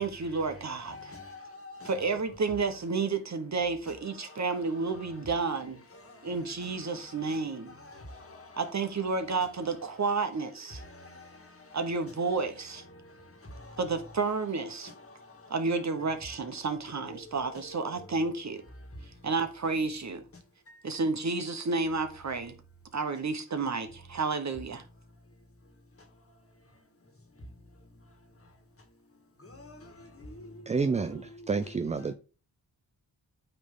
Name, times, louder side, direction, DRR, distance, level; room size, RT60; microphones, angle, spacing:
voice 1, 0.0-1.1 1.8-5.8 6.2-7.8 8.6-10.8 11.7-12.8 13.8-14.9 15.5-18.6 19.2-20.2 20.8-22.5 22.9-24.8, right 4 dB, 45° right, 1.1 m, -31 dB
voice 2, 0.9-1.9 4.2-4.4 4.9-5.1 5.9-8.6 10.8-11.8 12.9-13.8 14.8-15.5 16.9-18.0 18.8-19.1 20.7-20.8 26.0-26.1 27.4-27.5 28.4-28.5 29.4-30.7, left 2 dB, 35° left, 1.8 m, -48 dB
voice 3, 30.7-32.1, right 4 dB, 20° right, 0.3 m, -29 dB
8.8 x 3.3 x 3.8 m
cardioid pair, 75°, 40 cm